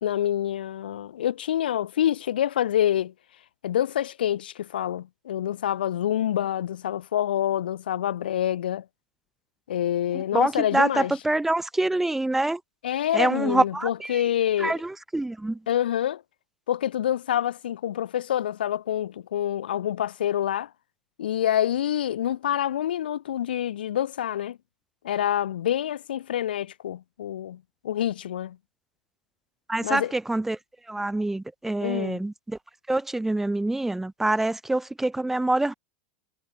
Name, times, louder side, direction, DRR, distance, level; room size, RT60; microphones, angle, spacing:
voice 1, 0.0-3.1 3.6-8.8 9.7-11.2 12.8-14.8 15.7-16.2 16.7-20.7 21.2-24.6 25.0-28.6 29.8-30.1 31.8-32.2, left 11 dB, 80° left, 1.7 m, -27 dB
voice 2, 10.1-12.6 13.1-14.2 14.6-15.6 29.7-30.6 30.9-32.6 32.9-35.7, right 2 dB, 5° right, 0.6 m, -26 dB
hypercardioid pair, 105°, 5 cm